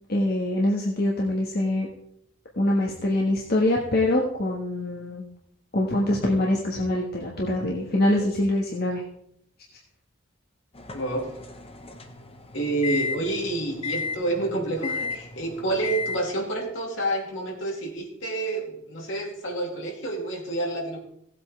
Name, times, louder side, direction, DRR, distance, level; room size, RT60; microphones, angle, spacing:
voice 1, 0.1-1.9 2.6-5.2 5.7-9.0, left 1 dB, 50° left, -2 dB, 1.4 m, -24 dB
sound 1, 10.7-16.2, left 4 dB, 30° left, 1.0 m, -34 dB
voice 2, 10.9-11.3 12.5-21.0, right 2 dB, 70° left, -1 dB, 2.9 m, -28 dB
17.0 x 8.3 x 3.3 m, 0.74 s
head